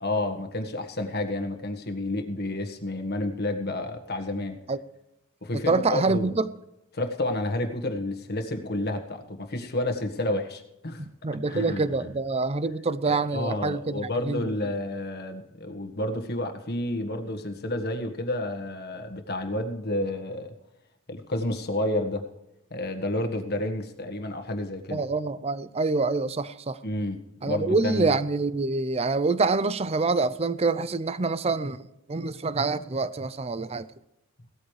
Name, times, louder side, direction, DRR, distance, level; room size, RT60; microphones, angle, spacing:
voice 1, 0.0-4.6 5.4-6.3 6.9-11.0 11.5-11.9 13.1-20.5 21.1-22.3 22.7-25.0 26.8-28.1, left 1 dB, 50° left, 1.6 m, -30 dB
voice 2, 5.7-6.5 11.0-14.5 24.9-26.8 27.4-33.9, right 3 dB, 30° right, 0.6 m, -26 dB
17.5 x 13.5 x 3.3 m
head